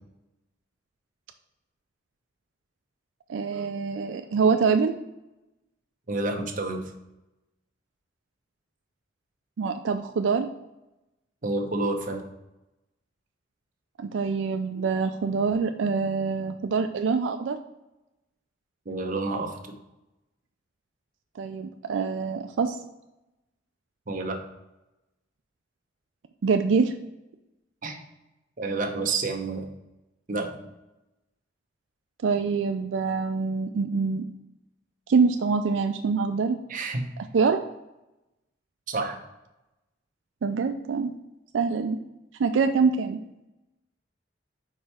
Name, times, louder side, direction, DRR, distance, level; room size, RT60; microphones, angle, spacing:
voice 1, 3.3-5.0 9.6-10.5 14.0-17.6 21.4-22.8 26.4-26.9 32.2-34.3 35.1-36.6 37.2-37.6 40.4-41.1 41.5-42.0 42.4-43.2, right 5 dB, 85° right, 7 dB, 0.4 m, -25 dB
voice 2, 6.1-6.9 11.4-12.3 18.9-19.8 24.1-24.4 27.8-28.0 28.6-29.7 30.3-30.6 36.7-37.1 38.9-39.2, right 3 dB, 45° right, 3 dB, 0.8 m, -29 dB
4.8 x 4.5 x 4.2 m, 0.96 s
head